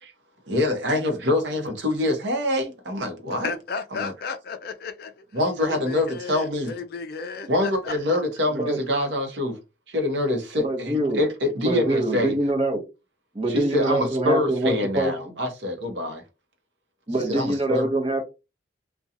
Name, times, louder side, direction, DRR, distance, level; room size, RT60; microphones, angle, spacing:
voice 1, 0.5-3.5 3.9-4.1 5.3-6.7 7.5-9.6 9.9-12.3 13.5-16.2 17.3-17.9, left 1 dB, 70° right, 0.8 m, -25 dB
voice 2, 3.3-5.3 5.6-7.9, left 5 dB, 55° left, 0.3 m, -34 dB
voice 3, 10.6-11.2 11.6-12.8 13.3-15.1 17.1-18.3, right 2 dB, 30° right, 0.7 m, -24 dB
2.7 x 2.2 x 2.5 m
head